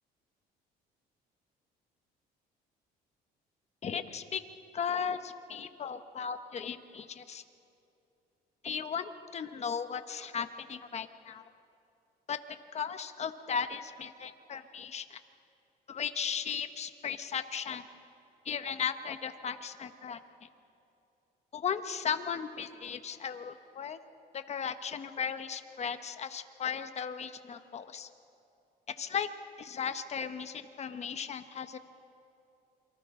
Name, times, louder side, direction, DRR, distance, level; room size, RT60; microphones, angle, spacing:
voice 1, 3.8-4.4 4.7-7.4 8.6-11.4 12.3-12.4 12.7-15.2 15.9-17.8 18.4-20.5 21.5-24.0 24.3-28.1 29.0-29.3 29.6-31.8, left 7 dB, 40° left, 9 dB, 1.1 m, -36 dB
28.0 x 24.0 x 3.8 m, 2.8 s
cardioid pair, 110°, 17 cm